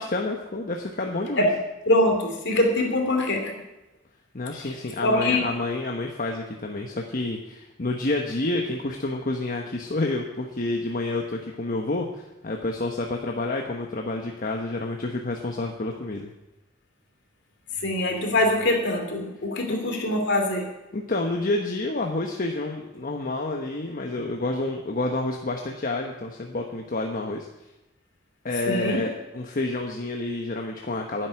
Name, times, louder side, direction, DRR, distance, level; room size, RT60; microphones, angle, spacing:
voice 1, 0.0-1.5 4.3-16.3 19.7-19.8 20.9-27.5 28.4-31.3, left 2 dB, 45° left, 2 dB, 1.1 m, -29 dB
voice 2, 1.9-3.5 5.0-5.5 17.8-20.7 28.7-29.0, left 1 dB, 60° left, 3 dB, 2.8 m, -23 dB
10.5 x 7.8 x 9.8 m, 0.97 s
head